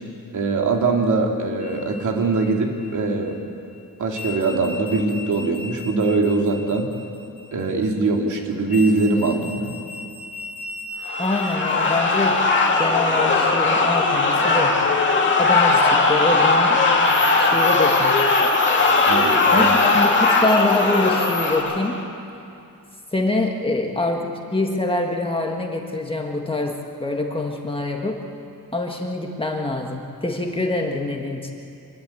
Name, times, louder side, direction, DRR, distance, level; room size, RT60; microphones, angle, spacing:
voice 1, 0.3-3.4 4.0-6.9 7.5-9.7 19.1-19.7, right 3 dB, 55° right, 1 dB, 2.8 m, -22 dB
sound 1, 1.6-3.4 4.1-8.1 8.7-16.0 16.9-21.6, left 1 dB, 25° right, 5.1 m, -38 dB
sound 2, 11.1-22.0, left 3 dB, 30° left, 2.3 m, -18 dB
voice 2, 11.2-12.4 12.8-14.7 15.4-16.8 17.4-18.3 19.5-22.0 23.1-26.7 27.0-28.2 28.7-31.5, left 2 dB, 15° left, 1 dB, 1.7 m, -25 dB
25.5 x 21.0 x 8.6 m, 2.6 s
wide cardioid pair, 180°, 36 cm